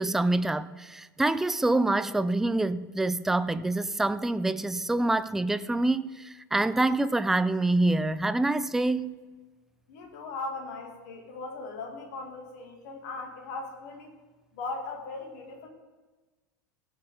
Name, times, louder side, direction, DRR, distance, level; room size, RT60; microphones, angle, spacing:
voice 1, 0.0-9.2, right 2 dB, 5° right, 0.3 m, -26 dB
voice 2, 9.9-14.1 14.5-15.7, left 3 dB, 55° left, 2.2 m, -38 dB
16.0 x 6.4 x 3.6 m
figure-of-eight pair, 85°, 11 cm